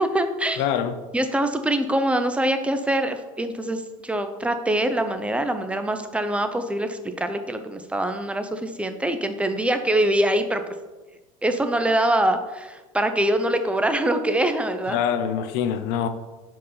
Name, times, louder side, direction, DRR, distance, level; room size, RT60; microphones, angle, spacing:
voice 1, 0.0-0.6 1.1-10.6 11.4-15.0, right 1 dB, 5° right, 8 dB, 0.6 m, -24 dB
voice 2, 0.6-1.0 14.9-16.1, left 8 dB, 60° left, 10 dB, 0.7 m, -24 dB
4.8 x 4.6 x 5.5 m, 1.2 s
supercardioid pair, 100°, 18 cm